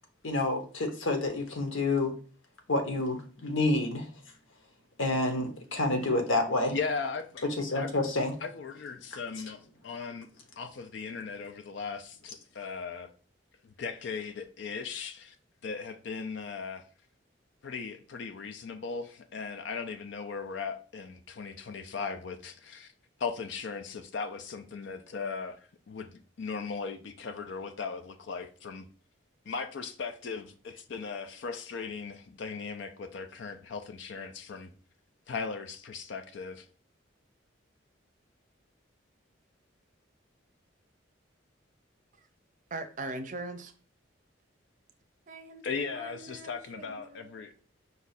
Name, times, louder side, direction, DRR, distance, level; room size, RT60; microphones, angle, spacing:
voice 1, 0.2-2.1 2.7-4.1 5.0-6.7 7.5-8.3, left 2 dB, 85° left, 1.0 m, -28 dB
voice 2, 6.7-7.4 7.7-7.9 8.4-10.3 10.6-13.1 13.8-15.3 15.6-16.8 17.6-22.9 23.2-25.6 25.9-28.9 29.5-34.7 35.3-36.6 45.6-47.5, left 5 dB, 65° left, 0.4 m, -38 dB
voice 3, 42.7-43.7 45.3-45.6 45.9-47.5, right 2 dB, 40° right, 0.5 m, -41 dB
5.3 x 2.4 x 4.0 m
head